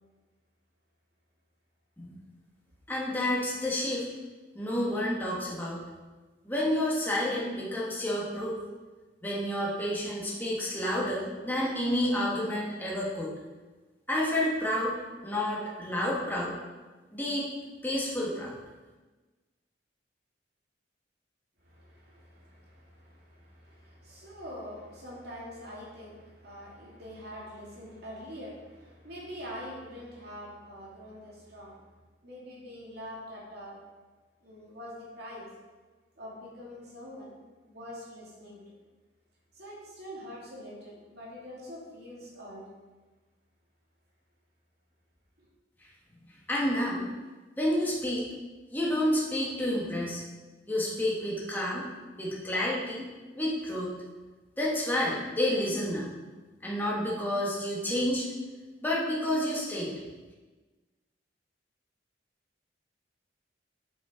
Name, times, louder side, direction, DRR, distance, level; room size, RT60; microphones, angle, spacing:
voice 1, 2.9-4.1 4.5-5.8 6.4-8.6 9.2-13.3 14.1-15.0 15.2-16.5 17.1-17.5 17.8-18.5 46.5-47.0 47.6-48.2 48.7-50.2 50.7-51.8 52.2-53.0 53.3-53.9 54.6-56.1 56.6-58.3 58.8-59.9, left 1 dB, 10° left, -5 dB, 1.6 m, -29 dB
voice 2, 21.6-31.8 32.2-33.8 34.4-35.5 36.2-37.3 37.6-38.6 39.5-42.6, equal, 60° right, -5 dB, 2.7 m, -44 dB
7.7 x 7.3 x 5.0 m, 1.3 s
head